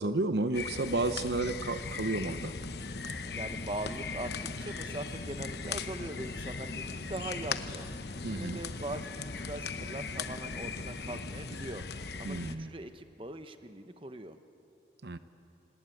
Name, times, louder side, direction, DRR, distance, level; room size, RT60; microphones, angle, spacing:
voice 1, 0.0-2.5 8.2-8.6 12.2-12.7 15.0-15.2, right 2 dB, 70° right, 11 dB, 0.8 m, -32 dB
sound 1, 0.5-12.5, left 4 dB, 70° left, 1.0 m, -39 dB
sound 2, 2.0-11.4, left 1 dB, 40° left, 1.5 m, -48 dB
voice 2, 3.3-7.9 8.3-11.8 12.2-14.4, right 1 dB, 30° right, 9 dB, 1.0 m, -41 dB
26.5 x 19.0 x 9.2 m, 2.8 s
head